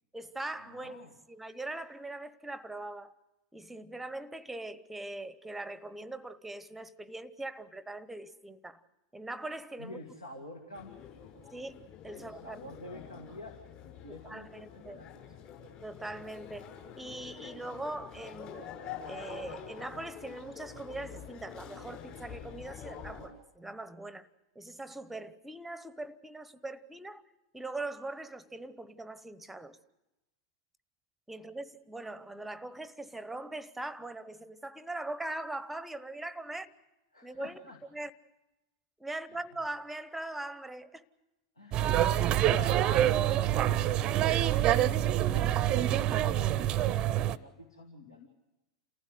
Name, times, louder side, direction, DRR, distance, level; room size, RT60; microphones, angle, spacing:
voice 1, 0.1-3.1 3.5-8.8 9.1-10.0 11.5-12.7 14.1-15.0 15.8-18.6 19.1-24.3 24.5-27.3 27.5-29.8 31.3-36.7 37.2-37.6 37.9-38.1 39.0-41.1 45.4-45.5, right 2 dB, 5° right, 0.9 m, -41 dB
voice 2, 0.7-1.1 9.8-11.0 12.1-15.5 37.1-37.8 39.3-39.4 41.6-44.6 44.9-48.3, left 1 dB, 80° left, 2.2 m, -49 dB
sound 1, 10.7-23.3, left 7 dB, 35° left, 6.4 m, -47 dB
sound 2, 41.7-47.4, right 12 dB, 30° right, 0.7 m, -26 dB
28.0 x 15.5 x 8.0 m
figure-of-eight pair, 95°, 3 cm